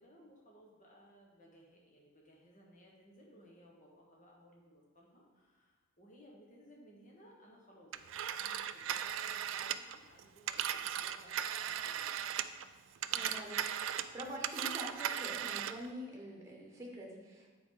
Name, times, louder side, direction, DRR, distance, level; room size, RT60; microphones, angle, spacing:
voice 1, 0.0-12.2 14.7-14.9, equal, 40° left, -2 dB, 1.5 m, -61 dB
Telephone, 7.9-12.7 13.0-15.9, right 10 dB, 70° right, 0.3 m, -37 dB
voice 2, 13.0-13.6 13.9-17.5, equal, 15° right, -2 dB, 1.3 m, -46 dB
9.2 x 4.5 x 3.9 m, 1.4 s
head